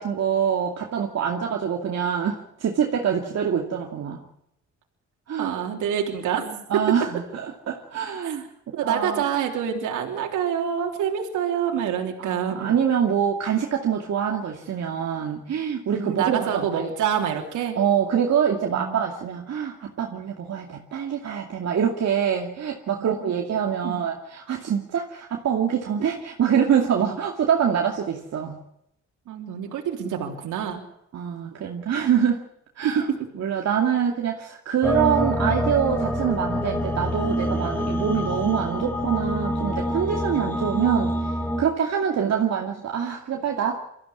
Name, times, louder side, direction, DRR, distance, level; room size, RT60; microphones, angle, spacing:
voice 1, 0.0-4.2 5.3-5.6 6.7-8.5 8.8-9.2 12.2-16.9 17.8-28.6 31.1-32.4 32.8-33.1 33.4-41.3 41.6-43.8, right 8 dB, 60° right, 1 dB, 2.5 m, -25 dB
voice 2, 5.4-6.6 8.2-8.4 8.7-12.7 15.9-17.8 18.7-19.0 23.0-23.1 23.8-24.0 29.3-30.8 32.8-33.2, right 8 dB, 85° right, 2 dB, 3.5 m, -27 dB
sound 1, 34.8-41.6, equal, 5° left, 4.8 m, -26 dB
24.0 x 14.5 x 9.8 m, 0.79 s
cardioid pair, 90°, 30 cm